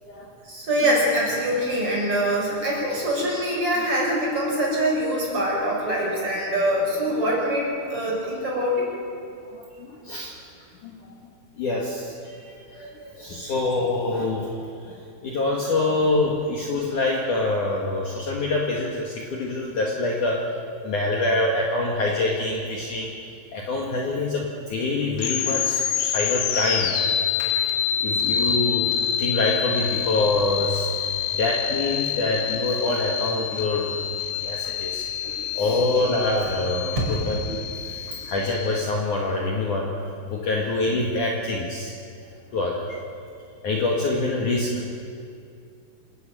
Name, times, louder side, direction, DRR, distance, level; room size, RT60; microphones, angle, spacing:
voice 1, 0.4-8.9 27.4-27.5 35.2-35.6 38.1-38.2, equal, 30° right, -3 dB, 6.6 m, -24 dB
voice 2, 9.5-10.3 10.8-10.9 11.6-14.5 14.9-20.4 20.8-23.1 23.5-26.9 28.0-30.9 31.3-33.9 34.4-35.1 35.6-37.7 38.3-39.9 40.3-41.9 42.5-42.9 43.6-44.9, left 2 dB, 50° left, -1 dB, 2.8 m, -25 dB
sound 1, 25.2-38.8, left 8 dB, 75° left, 3.7 m, -27 dB
27.0 x 14.0 x 9.2 m, 2.4 s
omnidirectional pair, 5.4 m